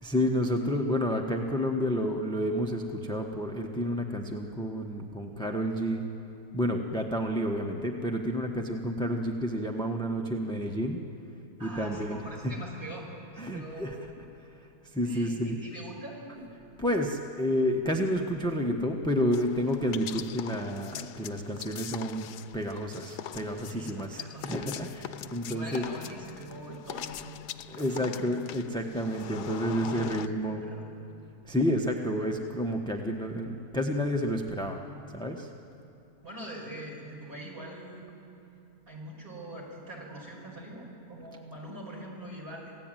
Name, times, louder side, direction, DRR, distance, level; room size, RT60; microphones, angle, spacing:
voice 1, 0.0-6.0 6.5-11.0 11.6-12.2 13.4-14.2 14.8-15.6 16.8-22.3 22.5-25.8 26.9-27.0 27.7-30.6 31.4-34.8 35.1-35.5, equal, 5° left, 2 dB, 1.0 m, -30 dB
voice 2, 11.6-13.1 13.3-14.0 15.0-16.2 23.6-24.6 24.9-25.1 25.5-27.4 27.7-28.1 29.7-30.9 36.2-38.1 38.9-42.8, right 1 dB, 35° right, -3 dB, 5.8 m, -43 dB
sound 1, 19.3-30.3, left 10 dB, 85° left, 1.3 m, -42 dB
27.5 x 17.0 x 9.1 m, 2.8 s
omnidirectional pair, 1.7 m